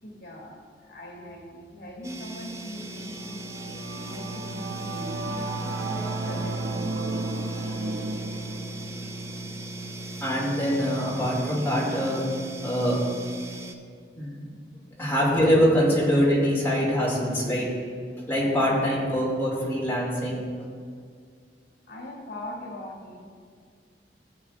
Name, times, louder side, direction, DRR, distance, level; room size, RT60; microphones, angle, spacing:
voice 1, 0.0-5.5 5.8-7.0 7.5-8.4 18.9-19.0 21.9-23.3, left 1 dB, 70° left, -1 dB, 2.5 m, -41 dB
sound 1, 2.0-13.7, right 1 dB, 15° right, 0.5 m, -39 dB
Singing / Musical instrument, 2.8-12.5, right 2 dB, 70° right, 0.7 m, -34 dB
voice 2, 10.2-12.2 12.6-13.0 14.2-14.4 15.0-17.7 18.3-20.5, equal, 15° left, -6 dB, 2.4 m, -24 dB
15.0 x 7.8 x 2.5 m, 2.1 s
head